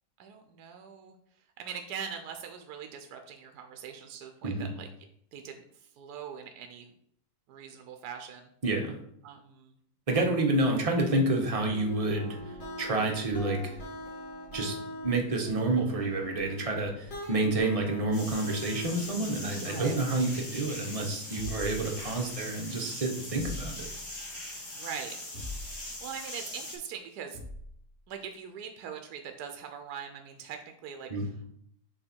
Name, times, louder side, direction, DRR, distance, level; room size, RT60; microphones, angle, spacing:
voice 1, 0.2-1.1 1.6-4.9 5.3-6.9 7.5-8.5 9.2-9.7 19.6-20.0 24.7-25.2 25.6-27.4 28.1-31.5, right 7 dB, 75° right, 5 dB, 1.1 m, -42 dB
voice 2, 8.6-8.9 10.1-12.4 12.8-13.8 14.5-14.8 15.0-23.8 31.1-31.2, right 2 dB, 30° right, 2 dB, 0.7 m, -29 dB
sound 1, 11.6-19.2, left 1 dB, 70° left, 2.6 m, -42 dB
sound 2, 18.1-26.8, left 1 dB, 45° left, 2.1 m, -41 dB
sound 3, 21.3-22.5 23.3-24.2 25.3-26.0 27.3-27.8, left 2 dB, 25° left, 2.2 m, -42 dB
6.7 x 3.4 x 4.4 m, 0.69 s
omnidirectional pair, 1.8 m